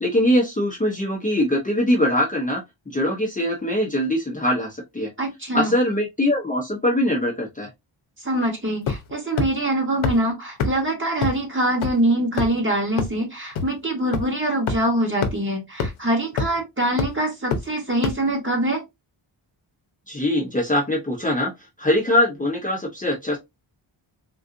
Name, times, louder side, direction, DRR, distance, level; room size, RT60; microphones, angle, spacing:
voice 1, 0.0-2.6 2.9-5.1 5.5-7.7 20.1-21.5 21.8-23.4, left 1 dB, 15° left, 0.8 m, -22 dB
voice 2, 5.2-5.7 8.2-18.8, right 1 dB, 25° right, 1.5 m, -24 dB
sound 1, 8.9-9.1 9.4-9.5 10.0-10.1 10.6-10.7 11.2-11.3 11.8-11.9 12.4-12.6 13.0-13.1 13.6-13.7 14.1-14.2 14.7-14.8 15.2-15.3 15.8-15.9 16.4-16.6 17.0-17.1 17.5-17.6 18.0-18.1, left 4 dB, 70° left, 0.8 m, -23 dB
3.8 x 2.4 x 2.5 m
wide cardioid pair, 125°, 49 cm